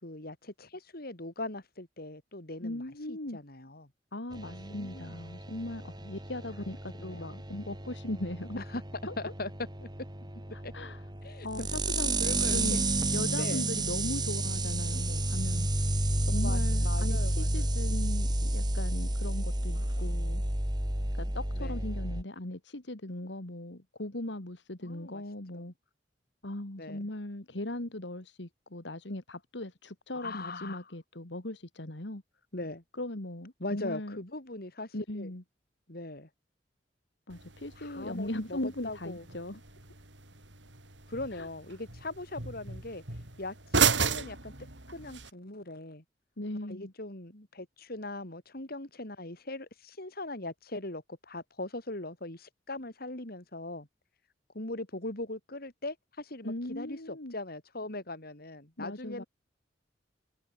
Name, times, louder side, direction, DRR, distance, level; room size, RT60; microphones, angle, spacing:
voice 1, 0.0-2.8 3.1-3.9 4.4-5.1 7.0-7.2 8.6-8.8 9.2-9.5 9.8-9.9 10.6-10.7 11.2-11.5 12.2-12.8 13.3-13.6 16.4-17.7 19.7-19.9 21.5-21.8 24.8-25.2 25.5-25.6 26.8-27.1 30.1-30.8 32.5-32.8 33.6-35.3 35.9-36.3 37.8-38.6 38.8-39.2 41.1-43.0 43.4-44.5 44.9-46.0 46.7-53.9 54.5-59.2, left 2 dB, 55° left, 4.3 m, -40 dB
voice 2, 2.6-3.4 4.1-8.6 9.0-9.1 10.5-11.1 11.4-12.2 12.5-12.9 13.1-15.8 16.3-20.4 21.2-25.7 26.4-32.2 33.0-34.2 34.9-35.4 37.3-39.6 41.3-41.5 46.4-46.9 56.4-57.4 58.8-59.2, left 1 dB, 70° left, 2.5 m, -38 dB
sound 1, 4.3-22.2, right 1 dB, 25° right, 3.6 m, -31 dB
sound 2, 37.3-45.3, right 5 dB, 85° right, 6.5 m, -34 dB
head